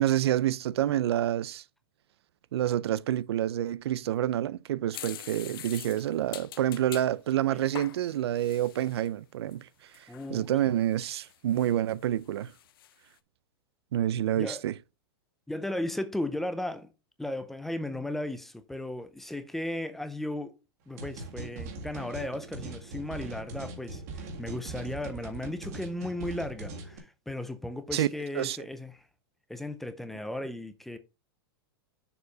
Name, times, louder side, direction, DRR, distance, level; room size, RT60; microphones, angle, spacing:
voice 1, 0.0-1.6 2.5-9.7 9.9-12.5 13.9-14.7 27.9-28.1 28.4-28.6, right 12 dB, 85° right, 0.5 m, -28 dB
sound 1, 4.9-7.1 7.6-9.1 9.5-9.6 9.9-10.3 10.9-12.1 12.4-12.9, left 12 dB, 60° left, 0.7 m, -45 dB
voice 2, 10.1-10.7 14.4-14.6 15.5-16.9 17.2-20.6 20.9-29.1 29.5-31.0, left 1 dB, ahead, 0.4 m, -36 dB
sound 2, 21.0-27.0, right 2 dB, 40° right, 1.7 m, -41 dB
6.9 x 4.6 x 5.3 m
supercardioid pair, 180°, 13 cm